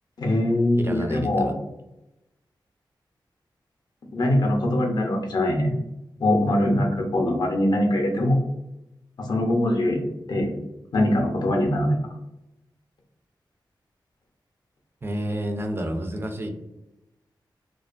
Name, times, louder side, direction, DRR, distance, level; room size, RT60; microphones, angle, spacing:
voice 1, 0.2-1.6 4.1-5.7 6.2-8.4 9.2-10.5 10.9-12.0, left 1 dB, 60° left, 1 dB, 0.6 m, -22 dB
voice 2, 0.8-1.5 15.0-16.5, right 1 dB, 30° right, 5 dB, 0.4 m, -30 dB
2.5 x 2.3 x 2.4 m, 0.91 s
wide cardioid pair, 120°, 8 cm